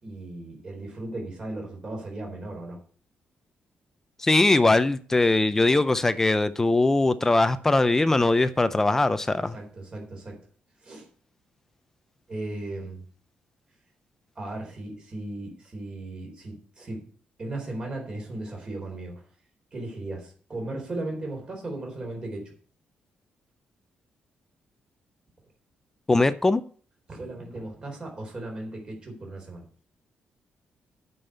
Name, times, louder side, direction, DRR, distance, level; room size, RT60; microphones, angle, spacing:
voice 1, 0.0-2.8 9.4-10.4 10.8-11.1 12.3-13.0 14.4-17.1 17.4-19.2 19.7-22.5 27.1-29.6, right 2 dB, 25° right, 3.8 m, -36 dB
voice 2, 4.2-9.5 26.1-26.6, left 2 dB, 15° left, 0.5 m, -21 dB
8.9 x 5.5 x 8.0 m
cardioid pair, 170°, 3 cm